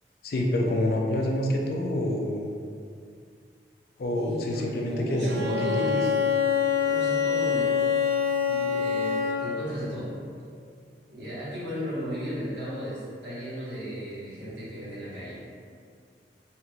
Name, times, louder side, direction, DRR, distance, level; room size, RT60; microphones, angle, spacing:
voice 1, 0.2-2.5 4.0-5.8, left 1 dB, 55° left, 0 dB, 0.4 m, -27 dB
voice 2, 4.2-6.2 6.8-7.8 8.5-10.1 11.1-15.4, equal, 85° right, -10 dB, 1.3 m, -35 dB
Bowed string instrument, 5.3-9.7, left 7 dB, 55° right, 0.3 m, -25 dB
3.2 x 2.5 x 2.8 m, 2.2 s
head